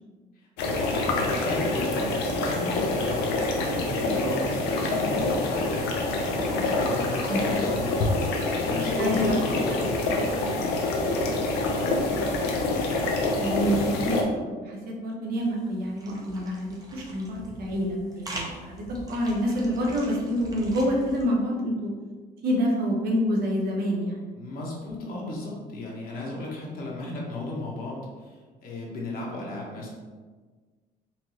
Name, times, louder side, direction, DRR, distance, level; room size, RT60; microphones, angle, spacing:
voice 1, 0.4-10.7 24.3-29.9, left 2 dB, 60° left, -3 dB, 1.2 m, -35 dB
sound 1, 0.6-14.2, left 2 dB, 90° left, 0.7 m, -26 dB
voice 2, 9.0-9.4 11.9-12.4 13.4-21.9 22.4-24.2, equal, 65° right, -1 dB, 1.1 m, -27 dB
sound 2, 15.4-21.3, right 1 dB, 20° right, 0.8 m, -43 dB
4.4 x 2.9 x 3.1 m, 1.4 s
cardioid pair, 110°, 17 cm